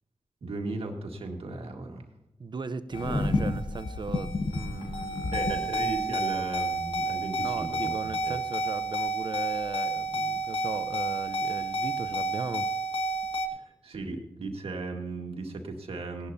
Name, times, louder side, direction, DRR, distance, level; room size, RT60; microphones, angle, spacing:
voice 1, 0.4-2.1 5.3-8.4 13.5-16.3, right 3 dB, 75° right, 3 dB, 1.9 m, -36 dB
voice 2, 2.4-5.4 7.4-12.7, right 4 dB, 50° right, 13 dB, 0.8 m, -37 dB
sound 1, 2.9-13.5, right 1 dB, 60° left, 1.6 m, -30 dB
17.5 x 11.5 x 2.8 m, 0.86 s
cardioid pair, 45°, 10 cm